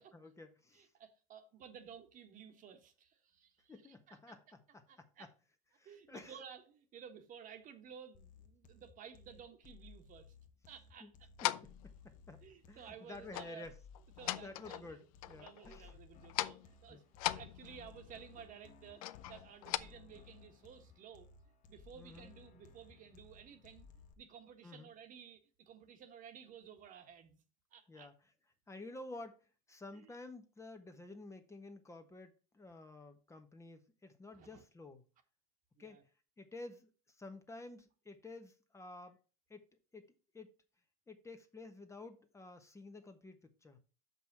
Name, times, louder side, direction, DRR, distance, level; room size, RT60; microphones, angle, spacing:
voice 1, 0.1-0.9 3.7-5.3 5.7-6.4 11.0-11.1 11.4-13.8 14.3-15.9 16.9-17.0 22.0-22.3 24.6-24.9 27.9-28.1 28.7-35.0 35.8-36.0 36.4-39.2 39.5-39.6 39.9-40.1 40.3-40.5 41.1-43.8, left 2 dB, 15° left, 1.2 m, -52 dB
voice 2, 0.7-4.3 4.9-5.3 5.8-10.3 10.7-11.1 12.4-13.7 14.2-15.0 15.3-21.3 21.7-23.9 24.2-27.4 27.7-28.1 29.9-30.1 34.3-34.6 35.8-36.0, right 7 dB, 50° right, 1.5 m, -55 dB
sound 1, 8.1-24.1, left 5 dB, 45° left, 1.2 m, -59 dB
sound 2, 11.4-11.8 13.3-13.6 13.9-14.9 15.2-15.9 16.2-16.7 17.2-18.0 19.0-19.8, left 15 dB, 90° left, 0.5 m, -39 dB
6.2 x 5.4 x 6.0 m
supercardioid pair, 105°, 18 cm